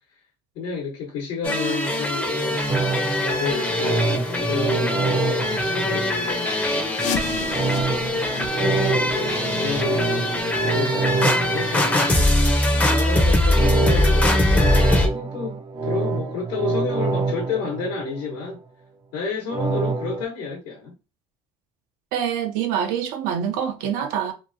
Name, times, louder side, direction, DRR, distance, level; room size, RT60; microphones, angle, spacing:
voice 1, 0.5-7.9 8.5-12.1 12.9-18.6 19.1-20.9, left 4 dB, 75° left, 1.1 m, -31 dB
sound 1, 1.4-15.1, left 1 dB, 10° left, 0.6 m, -22 dB
sound 2, 2.7-6.5 7.5-12.6 13.5-18.5 19.5-20.2, right 3 dB, 30° right, 0.4 m, -26 dB
sound 3, 6.9-12.5 12.8-13.0 13.5-13.6 14.2-14.3 14.8-14.9, left 7 dB, 60° left, 0.5 m, -35 dB
voice 2, 22.1-24.3, right 8 dB, 80° right, 0.7 m, -25 dB
2.8 x 2.4 x 2.5 m
supercardioid pair, 100°, 14 cm